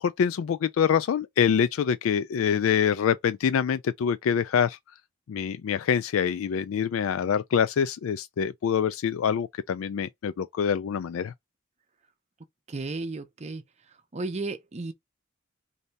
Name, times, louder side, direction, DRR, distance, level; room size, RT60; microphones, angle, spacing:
voice 1, 0.0-4.8 5.3-11.3, left 7 dB, 75° left, 0.3 m, -25 dB
voice 2, 12.7-13.6 14.1-14.9, right 3 dB, 30° right, 0.6 m, -33 dB
3.2 x 2.7 x 4.0 m
head